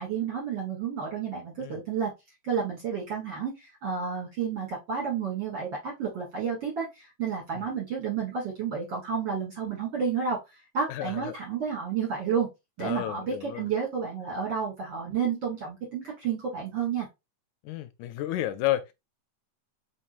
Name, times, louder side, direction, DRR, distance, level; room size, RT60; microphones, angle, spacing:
voice 1, 0.0-2.1 2.4-12.5 12.8-17.1, right 6 dB, 50° right, 1.6 m, -31 dB
voice 2, 10.9-11.4 12.8-13.7 17.6-18.9, left 14 dB, 80° left, 1.9 m, -31 dB
4.6 x 3.5 x 2.4 m
omnidirectional pair, 3.5 m